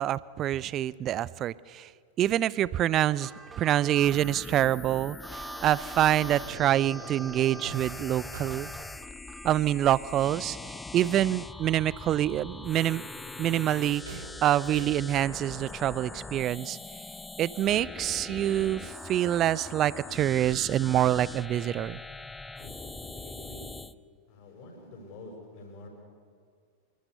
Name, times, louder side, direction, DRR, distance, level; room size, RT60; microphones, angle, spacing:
voice 1, 0.0-1.9 2.2-3.3 3.6-8.7 9.4-13.1 13.4-16.8 17.4-22.0, right 12 dB, 30° right, 21 dB, 0.6 m, -26 dB
sound 1, 1.5-1.6 1.8-4.1 4.5-11.0 11.4-11.5 11.8-15.8 16.1-19.5 19.8-21.0, right 4 dB, 70° right, 4.3 m, -51 dB
sound 2, 3.1-9.6, right 4 dB, 15° right, 1.3 m, -46 dB
sound 3, 4.0-23.9, left 3 dB, 10° left, 0.7 m, -42 dB
voice 2, 22.6-23.7 24.3-25.9, left 2 dB, 45° left, 1 dB, 6.7 m, -47 dB
28.0 x 24.0 x 6.7 m, 2.2 s
figure-of-eight pair, 90°, 0 cm